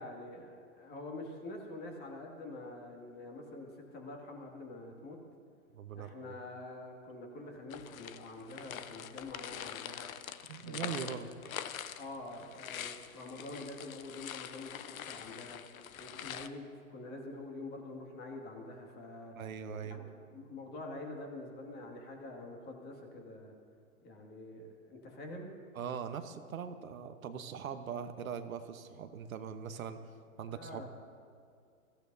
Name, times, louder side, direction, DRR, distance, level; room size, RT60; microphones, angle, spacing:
voice 1, 0.0-5.2 6.0-10.1 10.6-11.3 12.0-15.6 16.0-19.3 19.9-23.5 24.0-25.6 30.5-30.9, left 2 dB, 25° left, 1 dB, 2.1 m, -46 dB
voice 2, 5.7-6.4 10.5-11.3 19.3-20.0 25.7-30.0 30.4-30.9, right 7 dB, 70° right, 8 dB, 1.1 m, -41 dB
sound 1, 7.7-16.5, left 9 dB, 70° left, 0.8 m, -44 dB
21.5 x 15.0 x 2.7 m, 2.3 s
hypercardioid pair, 130°, 43 cm